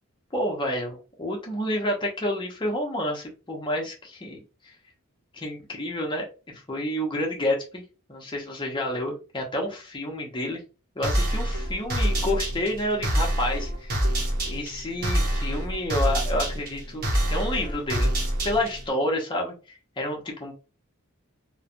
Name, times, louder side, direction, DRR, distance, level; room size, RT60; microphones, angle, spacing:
voice 1, 0.3-4.4 5.3-6.3 6.5-7.8 8.1-10.6 10.9-14.0 14.4-18.1 18.4-19.5 20.0-20.5, left 1 dB, 20° left, 0 dB, 0.7 m, -29 dB
sound 1, 11.0-18.9, equal, 40° right, 0.9 m, -26 dB
3.2 x 2.1 x 2.5 m, 0.33 s
head